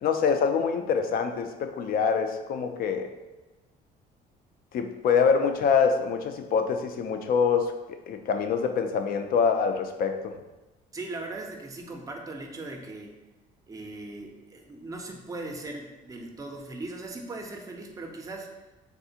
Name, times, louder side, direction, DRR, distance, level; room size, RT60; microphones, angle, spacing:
voice 1, 0.0-3.1 4.7-7.7 8.1-10.3, left 6 dB, 60° left, 6 dB, 0.4 m, -25 dB
voice 2, 10.9-13.2 13.7-18.5, right 2 dB, 20° right, 3 dB, 0.5 m, -39 dB
3.5 x 2.4 x 2.7 m, 1.1 s
cardioid pair, 110°, 17 cm